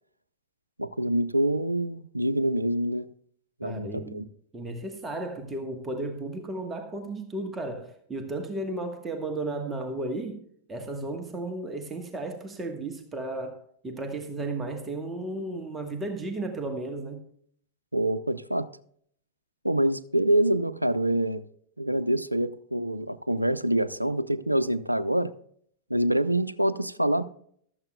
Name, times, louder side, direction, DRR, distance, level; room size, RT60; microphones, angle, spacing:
voice 1, 0.8-3.1 3.6-4.3 17.9-18.7 19.6-21.4 21.8-25.3 25.9-27.2, right 1 dB, 90° right, 0.5 m, -26 dB
voice 2, 3.6-4.2 4.5-10.4 10.7-17.2, right 2 dB, 15° right, 1.3 m, -34 dB
15.5 x 12.5 x 2.3 m
figure-of-eight pair, 90°, 0 cm